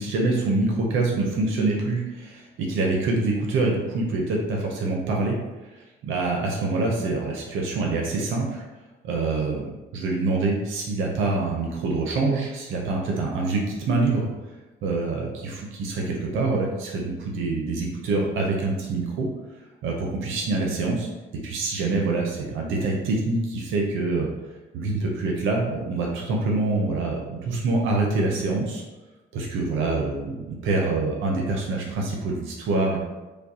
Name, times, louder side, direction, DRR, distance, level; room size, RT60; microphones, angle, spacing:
voice 1, 0.0-5.4 6.0-8.6 9.0-14.3 14.8-19.3 19.8-21.1 21.4-24.3 24.7-28.8 29.3-33.0, right 3 dB, 85° right, -1 dB, 0.7 m, -25 dB
5.1 x 2.2 x 2.7 m, 1.2 s
cardioid pair, 90°, 20 cm